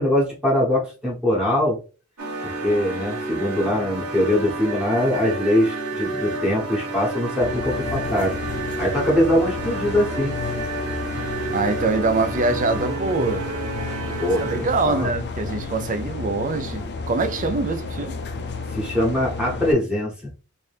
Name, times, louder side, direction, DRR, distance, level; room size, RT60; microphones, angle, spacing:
voice 1, 0.0-1.8 2.4-8.4 8.8-10.3 14.2-15.1 18.7-20.3, left 1 dB, 5° right, 1.1 m, -22 dB
sound 1, 2.2-14.8, right 2 dB, 80° right, 1.3 m, -30 dB
sound 2, 7.4-19.7, left 4 dB, 50° left, 0.5 m, -32 dB
voice 2, 11.5-13.5 14.4-18.2, right 3 dB, 35° right, 0.5 m, -24 dB
3.5 x 2.7 x 3.4 m
head